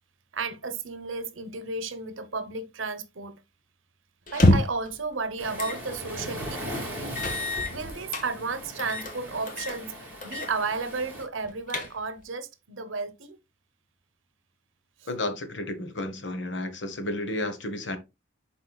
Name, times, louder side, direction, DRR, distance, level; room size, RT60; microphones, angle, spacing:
voice 1, 0.3-3.3 4.3-7.0 7.7-9.9 10.2-13.4, right 4 dB, 70° right, 0.9 m, -33 dB
sound 1, 4.3-4.9 5.6-5.8 6.2-6.3 7.2-8.3 8.8-9.1 9.5-9.8 10.2-10.5 10.8-10.9 11.4-12.2, left 1 dB, 40° left, 1.3 m, -26 dB
Waves surf, 5.4-11.2, equal, 10° right, 3.2 m, -38 dB
voice 2, 15.1-18.0, left 1 dB, 60° left, 1.2 m, -32 dB
11.0 x 4.2 x 2.3 m
head